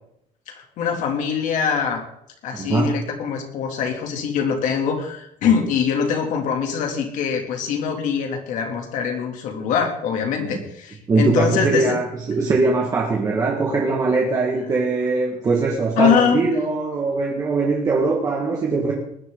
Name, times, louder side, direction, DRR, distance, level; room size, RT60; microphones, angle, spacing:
voice 1, 0.5-2.0 2.4-11.9 16.0-16.4, left 6 dB, 65° left, 3 dB, 3.2 m, -23 dB
voice 2, 2.6-3.0 11.1-18.9, right 3 dB, 25° right, -2 dB, 2.0 m, -21 dB
19.5 x 11.5 x 4.1 m, 0.75 s
cardioid pair, 175°, 14 cm